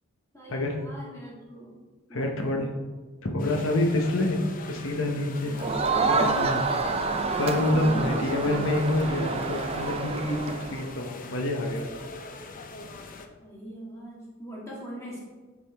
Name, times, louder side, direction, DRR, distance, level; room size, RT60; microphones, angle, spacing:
voice 1, 0.3-1.8 2.1-2.8 5.4-5.8 6.4-6.6 7.8-8.4 13.4-15.2, equal, 15° left, -6 dB, 2.2 m, -41 dB
voice 2, 2.1-2.7 3.2-4.4 4.7-5.6 6.1-6.6 7.4-11.9, left 1 dB, 70° left, 2 dB, 0.9 m, -27 dB
sound 1, 3.4-13.3, left 3 dB, 40° left, 0.6 m, -43 dB
Crowd, 5.6-10.9, right 3 dB, 30° right, 0.5 m, -28 dB
9.4 x 5.0 x 3.5 m, 1.4 s
head